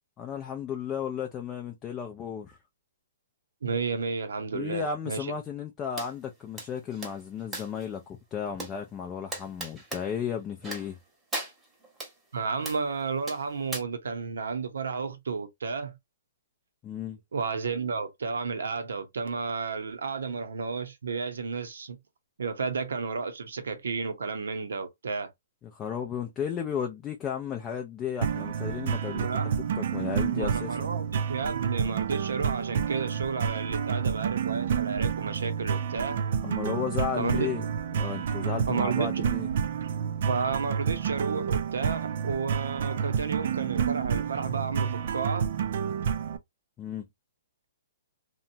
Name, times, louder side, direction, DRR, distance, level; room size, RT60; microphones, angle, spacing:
voice 1, 0.2-2.6 4.5-11.0 16.8-17.2 25.7-29.4 29.7-30.9 36.4-37.6 37.9-39.5 46.8-47.1, left 7 dB, 20° left, 0.4 m, -34 dB
voice 2, 3.6-5.3 12.3-16.0 17.3-22.0 22.4-25.3 29.1-29.4 30.3-36.2 37.2-37.5 38.7-39.2 40.3-45.5, right 5 dB, 85° right, 0.8 m, -32 dB
sound 1, 6.0-6.1 6.6-7.8 8.6-8.7 9.3-10.0 10.6-11.0 11.3-12.1 12.6-12.8 13.3-13.8, right 2 dB, 10° right, 1.0 m, -37 dB
sound 2, 28.2-46.4, right 7 dB, 55° right, 0.4 m, -29 dB
2.9 x 2.2 x 2.6 m
hypercardioid pair, 155°, 0 cm